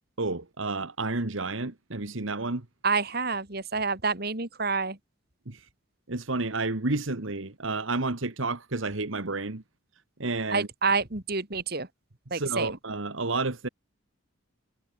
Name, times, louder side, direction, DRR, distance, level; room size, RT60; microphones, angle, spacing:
voice 1, 0.2-2.6 5.5-5.7 6.1-9.6 10.2-10.7 12.3-13.7, right 3 dB, 70° right, 1.6 m, -30 dB
voice 2, 2.8-5.0 10.5-11.9 12.3-12.8, right 4 dB, 50° right, 2.7 m, -28 dB
head